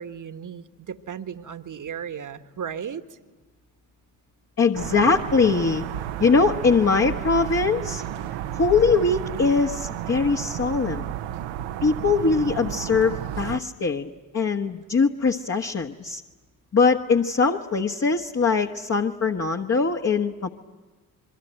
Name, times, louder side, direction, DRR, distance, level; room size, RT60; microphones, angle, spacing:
voice 1, 0.0-3.0, right 8 dB, 40° right, 10 dB, 1.6 m, -35 dB
voice 2, 4.6-5.8 6.2-8.0 8.5-11.1 11.8-16.2 16.7-20.5, left 4 dB, 30° left, 2 dB, 1.5 m, -22 dB
sound 1, 4.7-13.6, right 11 dB, 65° right, 1.1 m, -32 dB
27.0 x 23.0 x 9.1 m, 1.2 s
hypercardioid pair, 50°, 48 cm